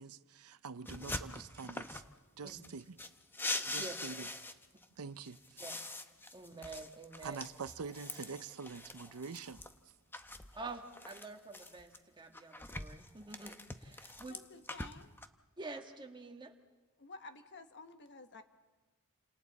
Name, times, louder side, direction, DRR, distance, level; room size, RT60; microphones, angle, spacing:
voice 1, 0.0-2.0 2.4-3.0 3.6-4.3 5.0-5.6 7.2-9.6, right 5 dB, 80° right, 0.6 m, -45 dB
sound 1, 0.9-2.1 2.5-4.8 5.2-9.7 10.1-12.0 12.3-15.3, left 2 dB, 10° left, 0.8 m, -43 dB
voice 2, 6.3-7.4 10.5-14.4 15.6-16.5, right 3 dB, 20° right, 1.6 m, -47 dB
voice 3, 14.3-15.1 17.0-18.4, left 3 dB, 55° left, 1.2 m, -52 dB
29.0 x 27.0 x 4.1 m
head